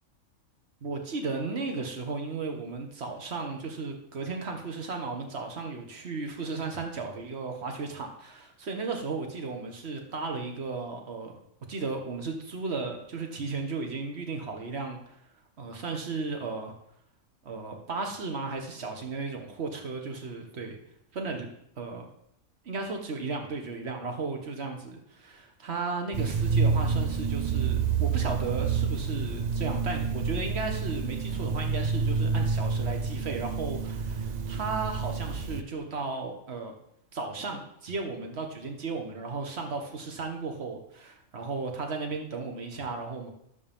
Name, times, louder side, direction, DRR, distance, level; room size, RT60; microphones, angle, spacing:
voice 1, 0.8-11.3 11.7-15.0 15.6-16.7 17.4-20.8 21.1-21.5 21.8-22.0 22.6-36.7 37.1-43.3, right 4 dB, 50° right, 3 dB, 1.6 m, -35 dB
sound 1, 26.1-35.6, right 5 dB, 85° right, 0.3 m, -28 dB
12.0 x 7.2 x 3.6 m, 0.74 s
omnidirectional pair, 1.5 m